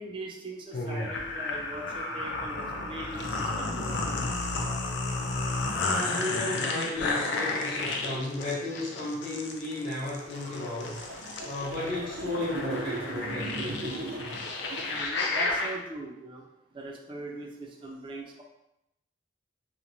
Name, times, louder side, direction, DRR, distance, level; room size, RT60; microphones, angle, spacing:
voice 1, 0.0-4.0 14.9-16.5 16.7-18.4, right 2 dB, 25° right, 0 dB, 0.4 m, -40 dB
sound 1, 0.7-15.7, left 3 dB, 65° left, 0.4 m, -32 dB
voice 2, 5.8-14.4, left 2 dB, 40° left, -12 dB, 0.8 m, -34 dB
sound 2, 9.7-15.0, right 3 dB, 85° right, 0.5 m, -39 dB
2.9 x 2.1 x 2.6 m, 0.86 s
head